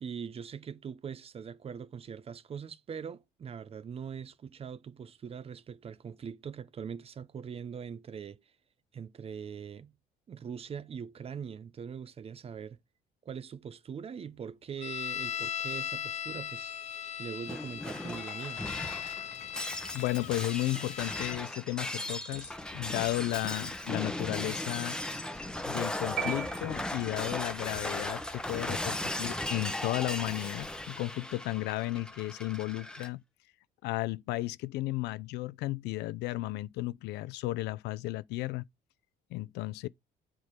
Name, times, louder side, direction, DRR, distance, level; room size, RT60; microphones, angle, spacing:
voice 1, 0.0-8.4 8.9-9.9 10.3-12.8 13.2-16.7 17.2-18.6, right 7 dB, 35° right, 0.7 m, -42 dB
sound 1, 14.8-21.4, left 9 dB, 40° left, 0.6 m, -38 dB
Shatter, 17.5-33.1, left 1 dB, 5° left, 1.1 m, -37 dB
voice 2, 19.9-25.0 25.7-33.2 33.8-38.6 39.3-39.9, left 18 dB, 90° left, 0.5 m, -34 dB
sound 2, 26.2-27.4, right 9 dB, 60° right, 0.9 m, -38 dB
7.9 x 3.8 x 6.6 m
cardioid pair, 110°, 17 cm